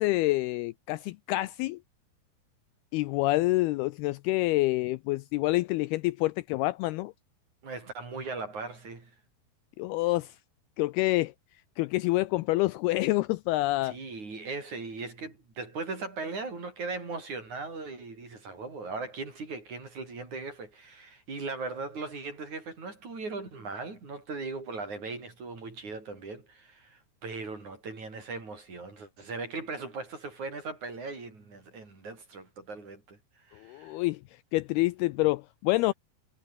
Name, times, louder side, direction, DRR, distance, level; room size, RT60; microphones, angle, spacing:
voice 1, 0.0-1.8 2.9-7.1 9.8-10.3 10.8-11.3 11.8-14.0 33.6-34.2 34.5-35.9, left 19 dB, 80° left, 2.4 m, -27 dB
voice 2, 7.6-9.1 13.8-34.0, right 3 dB, 45° right, 7.7 m, -39 dB
omnidirectional pair, 4.9 m